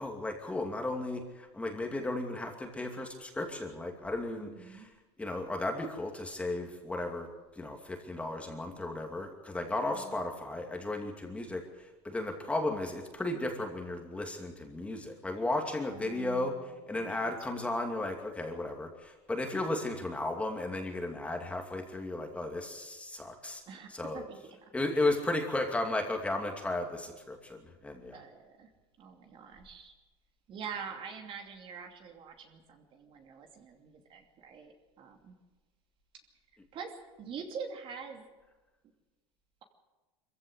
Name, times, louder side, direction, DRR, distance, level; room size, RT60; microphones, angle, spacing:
voice 1, 0.0-4.9 5.2-7.3 7.6-11.6 12.0-16.5 16.9-23.6 23.9-24.2 24.7-28.2, left 2 dB, 10° left, 3 dB, 2.6 m, -34 dB
voice 2, 4.4-4.9 9.9-10.2 15.9-17.7 23.7-24.7 28.1-28.7 29.0-29.9 30.5-35.3 36.7-36.9 37.2-38.3, right 6 dB, 40° right, 4 dB, 2.8 m, -45 dB
23.0 x 15.5 x 8.1 m, 1.2 s
supercardioid pair, 130°, 14 cm